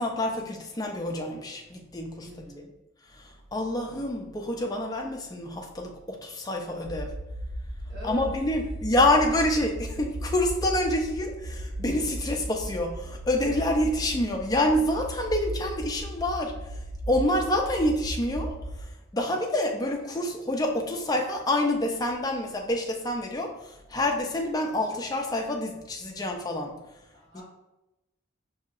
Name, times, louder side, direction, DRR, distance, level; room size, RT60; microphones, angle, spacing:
voice 1, 0.0-2.3 3.1-7.1 8.0-16.8 17.1-18.5 18.8-18.9 19.1-26.8 27.3-27.4, left 1 dB, 20° left, 2 dB, 0.4 m, -27 dB
voice 2, 2.2-2.7 7.9-8.3 27.1-27.4, left 1 dB, 55° right, -9 dB, 1.2 m, -42 dB
sound 1, 6.8-18.8, right 1 dB, 85° right, 0.6 m, -36 dB
5.5 x 2.8 x 2.4 m, 0.96 s
head